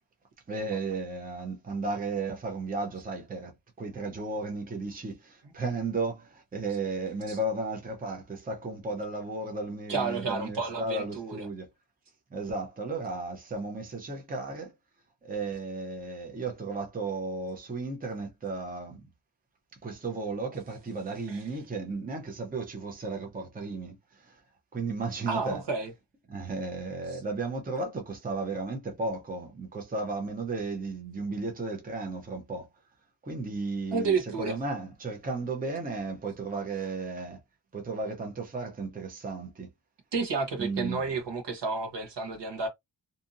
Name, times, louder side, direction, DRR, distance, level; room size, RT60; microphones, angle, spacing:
voice 1, 0.5-11.7 12.3-14.7 15.2-19.0 19.8-24.4 24.7-25.6 26.3-32.7 33.2-37.4 37.7-39.7 40.6-41.1, right 3 dB, 20° right, 0.6 m, -34 dB
voice 2, 9.9-11.4 21.3-21.4 25.3-25.9 27.1-27.2 33.9-34.6 40.1-42.7, right 4 dB, 70° right, 1.0 m, -31 dB
2.7 x 2.6 x 2.5 m
wide cardioid pair, 155°, 44 cm